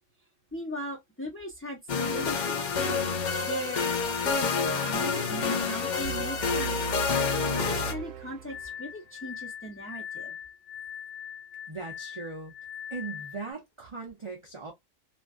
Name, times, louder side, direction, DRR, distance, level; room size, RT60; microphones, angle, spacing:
voice 1, 0.5-3.1 3.4-3.8 4.2-6.8 7.5-10.3, equal, 15° left, 0.6 m, -38 dB
sound 1, 1.9-7.9, left 5 dB, 70° left, 0.4 m, -28 dB
sound 2, 6.0-9.2, right 8 dB, 85° right, 1.0 m, -38 dB
Glass, 8.5-13.5, left 8 dB, 85° left, 1.0 m, -41 dB
voice 2, 11.7-12.5 12.9-14.7, right 4 dB, 40° right, 0.4 m, -39 dB
2.5 x 2.2 x 2.3 m
omnidirectional pair, 1.4 m